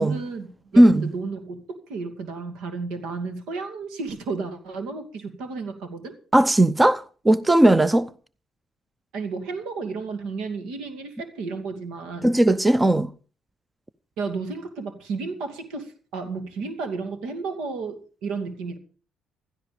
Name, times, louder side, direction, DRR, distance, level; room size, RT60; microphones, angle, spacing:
voice 1, 0.0-6.1 9.1-12.3 14.2-18.8, right 4 dB, 75° right, 2.5 m, -32 dB
voice 2, 0.8-1.1 6.3-8.1 12.2-13.1, right 1 dB, 15° right, 0.7 m, -17 dB
16.0 x 12.5 x 5.1 m
supercardioid pair, 60°, 0 cm